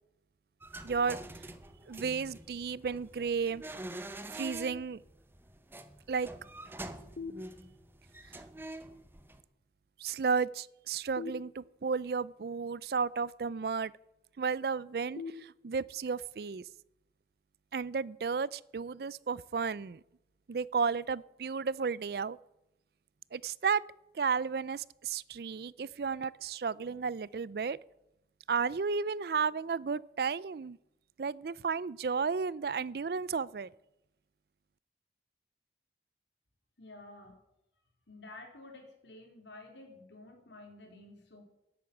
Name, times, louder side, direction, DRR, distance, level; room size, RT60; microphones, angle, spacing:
sound 1, 0.6-9.4, right 1 dB, 10° right, 0.8 m, -46 dB
voice 1, 0.8-1.2 1.9-3.6 4.3-5.0 6.1-6.3 10.0-13.9 14.4-16.6 17.7-20.0 20.5-22.4 23.3-23.8 24.1-27.8 28.5-30.8 31.2-33.7, right 5 dB, 60° right, 21 dB, 0.4 m, -33 dB
sound 2, 7.2-8.1 11.1-12.2 15.2-16.2, left 4 dB, 50° left, 0.8 m, -45 dB
voice 2, 36.8-37.4 38.1-41.4, left 2 dB, 90° left, 2 dB, 3.8 m, -51 dB
13.0 x 8.7 x 8.6 m, 0.90 s
head